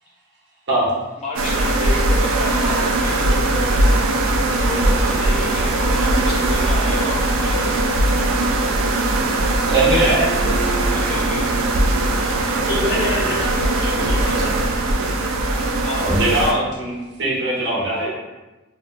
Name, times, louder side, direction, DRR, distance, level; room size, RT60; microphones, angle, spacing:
voice 1, 1.2-3.8 4.6-7.8 10.9-11.4 15.8-16.3, left 2 dB, 35° left, -4 dB, 0.3 m, -31 dB
sound 1, 1.4-16.5, right 2 dB, 90° right, 0.4 m, -20 dB
sound 2, 9.2-13.5, right 4 dB, 20° right, 0.5 m, -36 dB
voice 2, 9.7-10.3 15.9-18.1, right 2 dB, 60° right, -6 dB, 0.9 m, -20 dB
voice 3, 12.7-14.6, left 1 dB, 55° left, -7 dB, 1.0 m, -27 dB
2.7 x 2.1 x 2.6 m, 1.1 s
head